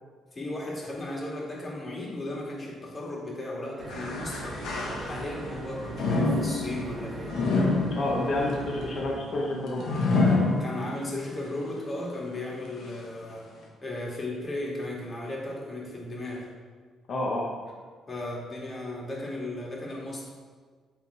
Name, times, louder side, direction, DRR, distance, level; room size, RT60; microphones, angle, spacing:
voice 1, 0.3-7.4 10.6-13.5 13.8-16.5 18.1-20.3, left 1 dB, 30° left, -3 dB, 2.0 m, -36 dB
sound 1, 3.8-9.0, right 2 dB, 50° right, 1.7 m, -40 dB
sound 2, 3.9-5.5 5.9-11.2 11.7-11.8 12.6-12.7, left 3 dB, 80° left, 1.2 m, -27 dB
voice 2, 7.9-9.9 17.1-17.5, left 2 dB, 55° left, -2 dB, 1.2 m, -29 dB
8.4 x 3.6 x 4.7 m, 1.5 s
cardioid pair, 90°, 0 cm